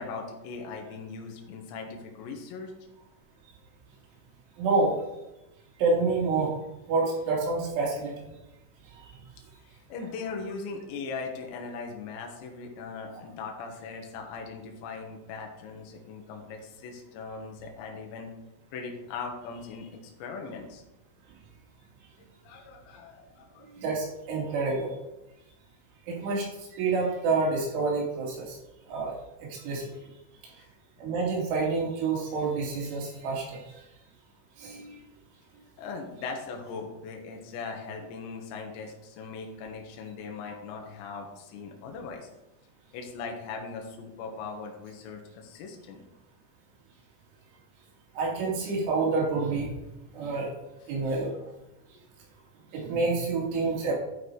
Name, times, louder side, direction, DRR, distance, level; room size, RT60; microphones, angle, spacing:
voice 1, 0.0-2.7 9.9-18.3 18.7-20.8 22.4-23.7 35.8-42.3 42.9-46.0, left 4 dB, 70° left, 2 dB, 3.3 m, -39 dB
voice 2, 4.6-5.0 5.8-6.6 6.9-8.3 8.9-9.1 23.7-24.9 26.1-26.5 26.7-28.6 28.9-29.2 29.4-29.9 30.4-30.5 31.0-33.6 34.6-35.1 48.1-49.7 50.1-50.5 50.9-51.4 52.7-53.9, right 3 dB, 70° right, -3 dB, 4.9 m, -28 dB
11.5 x 6.0 x 4.8 m, 0.94 s
omnidirectional pair, 5.9 m